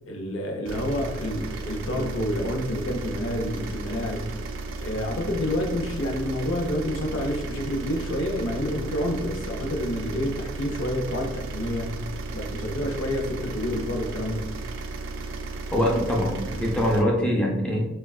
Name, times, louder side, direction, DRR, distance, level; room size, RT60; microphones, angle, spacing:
voice 1, 0.1-4.3 4.8-12.0 12.3-14.5, left 1 dB, 75° left, 0.5 m, -28 dB
sound 1, 0.7-17.0, right 3 dB, 85° right, 0.4 m, -34 dB
voice 2, 15.7-17.9, equal, 5° left, 0.4 m, -23 dB
3.3 x 2.2 x 2.3 m
head